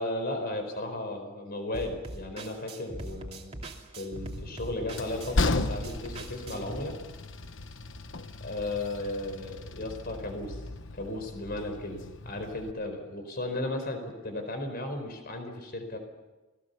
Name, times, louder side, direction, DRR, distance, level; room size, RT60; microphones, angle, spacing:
voice 1, 0.0-6.9 8.4-10.6 10.9-16.0, left 1 dB, 45° left, 7 dB, 4.5 m, -35 dB
sound 1, 1.7-6.8, right 1 dB, 30° right, 2.7 m, -41 dB
Train, 4.1-12.7, left 2 dB, 65° left, 1.2 m, -35 dB
29.0 x 19.5 x 7.0 m, 1.1 s
head